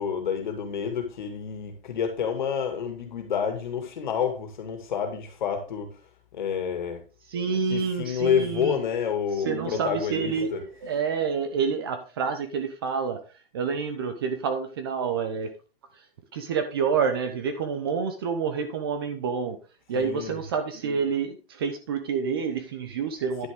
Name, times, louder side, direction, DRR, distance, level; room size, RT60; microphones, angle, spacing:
voice 1, 0.0-6.0 6.3-7.0 7.7-10.6 20.0-20.4, left 7 dB, 50° left, 2.3 m, -29 dB
voice 2, 7.3-8.8 9.4-13.2 13.5-15.5 16.3-19.6 19.9-23.5, right 6 dB, 25° right, 0.8 m, -28 dB
10.5 x 6.5 x 3.6 m
hypercardioid pair, 180°, 29 cm